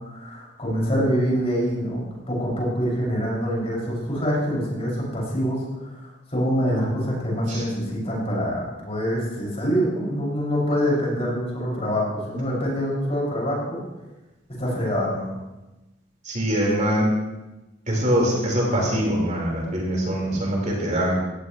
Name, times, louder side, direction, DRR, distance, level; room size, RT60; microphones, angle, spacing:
voice 1, 0.1-13.8 14.6-15.3, equal, 35° left, -4 dB, 6.5 m, -25 dB
voice 2, 16.2-17.1 17.9-21.1, equal, 40° right, -3 dB, 4.7 m, -23 dB
18.5 x 16.5 x 3.2 m, 1.1 s
head